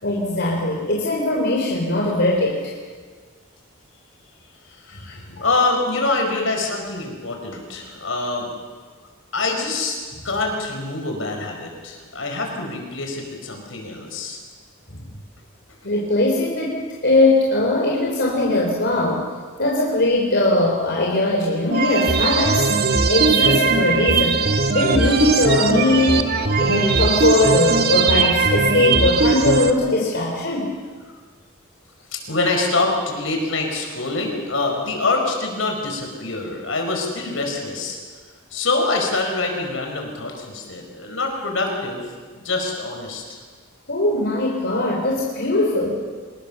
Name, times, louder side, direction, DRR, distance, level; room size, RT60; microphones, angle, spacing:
voice 1, 0.0-2.6 4.9-5.4 15.8-19.3 19.6-22.7 23.1-24.4 24.7-26.2 26.6-30.7 43.9-46.0, left 2 dB, 55° left, -2 dB, 3.7 m, -20 dB
voice 2, 4.7-8.5 9.3-10.0 10.2-14.4 31.1-31.2 32.1-38.0 38.5-42.0 42.3-43.4, left 3 dB, 70° left, 2 dB, 5.1 m, -25 dB
sound 1, 21.7-29.7, right 4 dB, 50° right, 1.5 m, -19 dB
25.5 x 20.0 x 6.9 m, 1.5 s
head